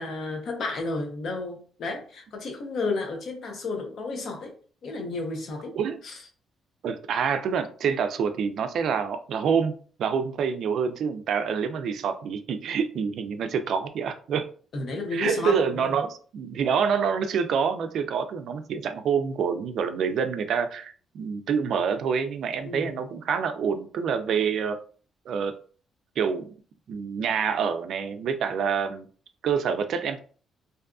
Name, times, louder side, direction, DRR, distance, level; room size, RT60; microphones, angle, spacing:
voice 1, 0.0-4.5 4.8-5.8 6.0-6.2 14.7-15.9 22.6-23.0, left 3 dB, 60° left, 3 dB, 0.7 m, -32 dB
voice 2, 6.8-14.5 15.1-24.8 25.3-25.6 26.2-26.5 26.9-29.1 29.4-30.2, right 6 dB, 65° right, 9 dB, 0.3 m, -27 dB
2.6 x 2.4 x 2.3 m, 0.41 s
cardioid pair, 115°, 0 cm